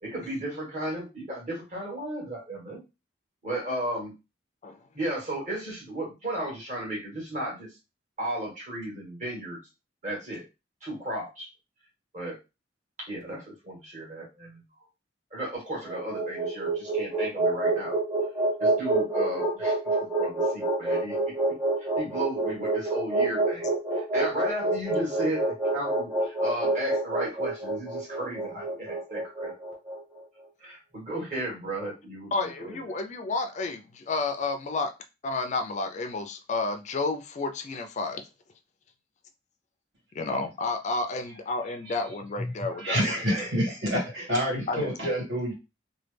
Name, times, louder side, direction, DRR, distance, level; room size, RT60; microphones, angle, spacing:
voice 1, 0.0-2.8 3.4-4.1 4.9-7.7 8.2-9.6 10.0-10.4 10.8-11.5 12.1-12.4 13.0-14.6 15.3-18.0 18.6-19.8 20.2-21.6 22.0-23.7 23.9-29.5 30.6-32.9, right 1 dB, 40° right, -4 dB, 1.7 m, -34 dB
sound 1, 15.7-30.0, right 2 dB, 10° right, 0.9 m, -27 dB
voice 2, 32.3-34.9 35.2-38.2 40.2-43.1 44.7-44.9, left 3 dB, 40° left, 7 dB, 0.4 m, -31 dB
voice 3, 42.8-45.5, equal, 70° right, -3 dB, 2.0 m, -27 dB
3.1 x 2.2 x 3.3 m, 0.26 s
head